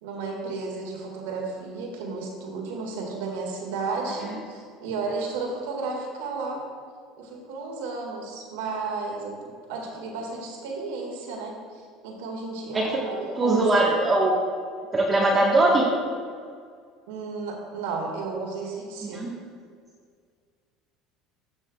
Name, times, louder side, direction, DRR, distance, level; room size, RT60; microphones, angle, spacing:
voice 1, 0.0-6.6 7.2-13.7 14.2-14.3 17.1-19.3, right 4 dB, 85° right, 0 dB, 1.8 m, -33 dB
voice 2, 13.4-14.3 14.9-15.9 19.1-19.3, right 2 dB, 25° right, -3 dB, 1.2 m, -21 dB
13.5 x 6.3 x 2.3 m, 2.1 s
supercardioid pair, 90°, 0 cm